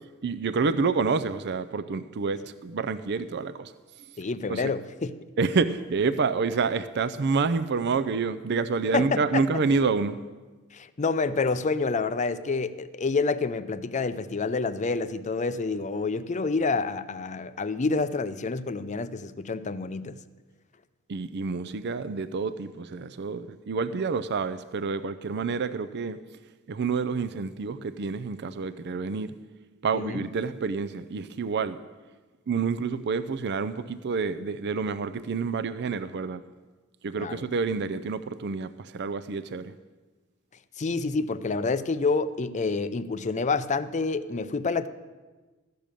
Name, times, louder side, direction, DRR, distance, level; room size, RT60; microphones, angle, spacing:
voice 1, 0.2-3.7 4.5-4.7 5.4-10.2 21.1-26.2 26.7-29.3 29.8-31.8 32.5-36.4 37.0-39.7, right 4 dB, 55° right, 13 dB, 0.5 m, -28 dB
voice 2, 4.2-5.2 8.9-9.4 10.7-20.2 29.9-30.3 37.2-37.4 40.8-44.9, left 4 dB, 35° left, 13 dB, 0.5 m, -28 dB
14.0 x 6.8 x 8.9 m, 1.3 s
head